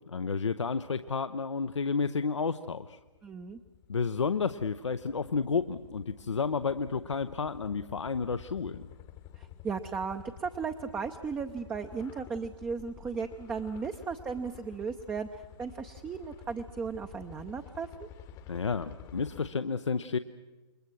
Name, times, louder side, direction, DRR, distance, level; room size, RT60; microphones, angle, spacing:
voice 1, 0.1-3.0 3.9-8.9 18.5-20.2, left 5 dB, 70° left, 10 dB, 0.8 m, -31 dB
sound 1, 2.8-19.5, left 9 dB, 25° left, 1.1 m, -51 dB
voice 2, 3.2-3.6 9.4-15.3 15.6-18.1, right 5 dB, 10° right, 6 dB, 0.7 m, -36 dB
28.5 x 23.0 x 6.2 m, 1.2 s
figure-of-eight pair, 120°, 16 cm